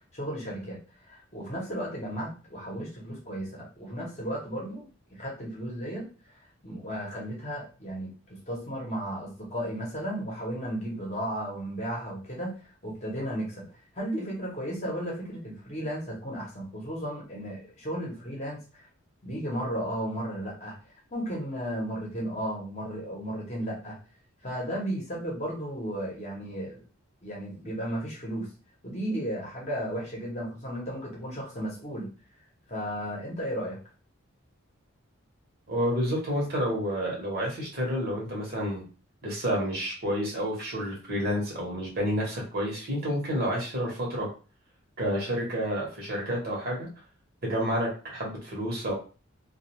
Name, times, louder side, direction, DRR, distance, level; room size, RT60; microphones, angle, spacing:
voice 1, 0.1-0.8 1.0-6.1 6.6-12.5 12.8-13.6 14.0-18.6 19.2-20.7 21.1-24.0 24.4-26.8 27.2-28.5 28.8-32.1 32.7-33.8, equal, 30° left, -3 dB, 1.0 m, -34 dB
voice 2, 35.7-38.8 39.2-44.3 45.0-46.9 47.4-48.9, equal, 45° right, -3 dB, 1.1 m, -29 dB
2.4 x 2.3 x 2.9 m, 0.36 s
head